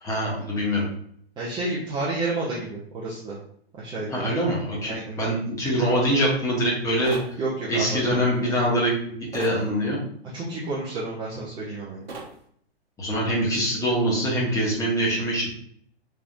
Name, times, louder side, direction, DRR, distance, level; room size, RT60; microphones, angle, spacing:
voice 1, 0.0-0.8 4.1-7.4 7.7-10.0 13.0-15.5, equal, 10° left, -5 dB, 1.1 m, -24 dB
voice 2, 1.4-3.4 3.8-4.3 4.8-5.2 7.4-8.6 10.3-12.0, right 2 dB, 15° right, -7 dB, 0.7 m, -31 dB
sound 1, 7.0-7.4 9.3-9.6 12.1-12.4, right 3 dB, 65° right, 1.0 m, -37 dB
4.6 x 3.5 x 2.6 m, 0.63 s
figure-of-eight pair, 115°, 32 cm